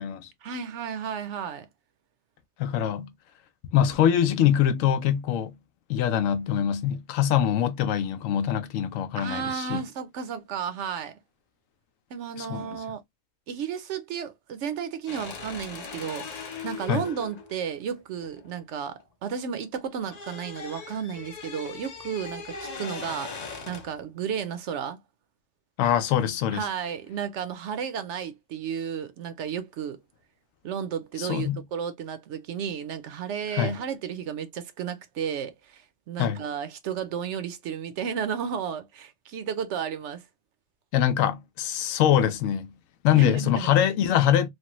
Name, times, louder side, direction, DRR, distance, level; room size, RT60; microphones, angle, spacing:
voice 1, 0.4-1.7 9.1-11.1 12.1-13.0 13.5-25.0 26.5-30.0 30.6-40.2 43.1-43.7, right 7 dB, 70° right, 0.8 m, -33 dB
voice 2, 2.6-3.1 3.7-5.5 5.9-9.8 12.4-12.7 16.9-17.0 25.8-26.7 31.2-31.6 33.5-33.8 36.2-36.4 40.9-42.7 43.0-44.5, left 10 dB, 80° left, 1.0 m, -23 dB
sound 1, 15.1-19.3 19.6-24.0, left 5 dB, 50° left, 0.5 m, -40 dB
3.2 x 2.2 x 2.9 m
omnidirectional pair, 1.4 m